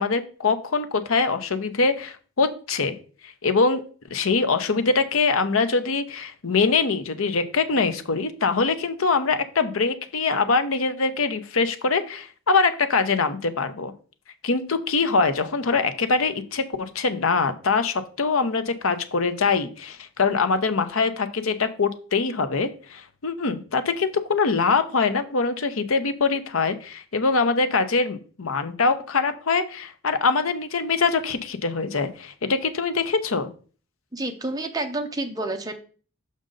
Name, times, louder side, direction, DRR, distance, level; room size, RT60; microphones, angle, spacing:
voice 1, 0.0-2.9 3.2-3.8 4.1-13.9 14.4-33.5, left 4 dB, 80° left, 10 dB, 0.7 m, -23 dB
voice 2, 34.1-35.8, right 2 dB, 20° right, 5 dB, 0.7 m, -29 dB
6.4 x 5.2 x 3.8 m, 0.40 s
head